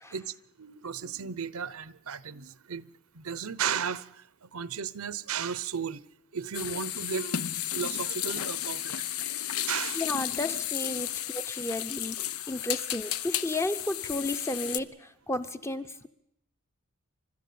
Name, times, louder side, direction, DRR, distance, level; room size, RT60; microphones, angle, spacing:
voice 1, 0.1-2.9 3.1-4.1 4.4-6.0 6.3-7.4 7.7-8.9 9.2-9.3 9.6-10.0, right 7 dB, 80° right, 0.8 m, -34 dB
sound 1, 6.5-14.8, left 11 dB, 75° left, 0.8 m, -33 dB
voice 2, 9.9-12.2 12.5-16.1, left 1 dB, 10° left, 0.8 m, -33 dB
29.5 x 13.0 x 8.6 m
head